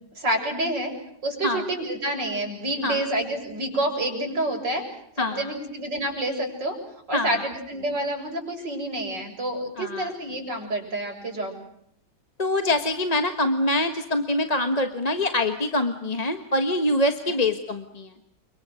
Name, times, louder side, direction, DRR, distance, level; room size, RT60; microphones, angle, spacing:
voice 1, 0.2-0.9 1.2-4.8 5.2-6.8 7.1-11.5 17.3-17.4, right 1 dB, 85° right, 2 dB, 7.8 m, -28 dB
voice 2, 5.2-5.5 7.1-7.4 9.8-10.1 12.4-18.1, left 1 dB, 25° left, 7 dB, 1.4 m, -25 dB
29.5 x 26.0 x 6.5 m, 0.72 s
omnidirectional pair, 1.9 m